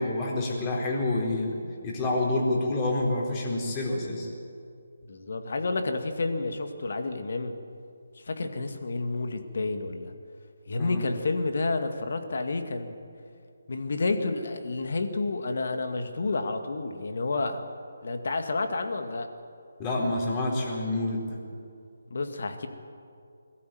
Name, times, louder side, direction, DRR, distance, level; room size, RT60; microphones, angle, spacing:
voice 1, 0.0-1.6 1.8-4.3 10.8-11.0 19.8-21.4, left 2 dB, 25° left, -2 dB, 4.3 m, -28 dB
voice 2, 5.1-7.5 8.2-10.1 10.7-12.9 13.7-17.6 18.0-19.3 22.1-22.7, left 3 dB, 60° left, 7 dB, 2.1 m, -30 dB
22.0 x 14.0 x 9.4 m, 2.4 s
figure-of-eight pair, 150°, 0 cm